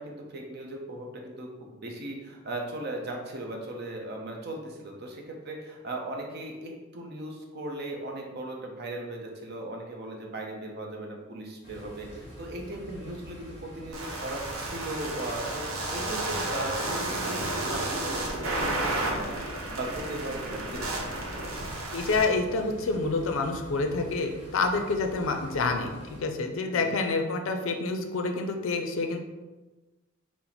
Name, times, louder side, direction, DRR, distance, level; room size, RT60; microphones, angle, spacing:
voice 1, 0.0-18.2 18.5-21.6 26.7-27.0, right 1 dB, 50° right, 1 dB, 0.6 m, -38 dB
sound 1, 11.6-26.2, equal, 30° left, 1.0 m, -45 dB
sound 2, 13.9-22.2, right 2 dB, 80° right, 0.9 m, -32 dB
voice 2, 21.9-25.9 26.2-29.2, left 3 dB, 65° left, 5 dB, 0.4 m, -28 dB
4.3 x 2.0 x 3.9 m, 1.2 s
head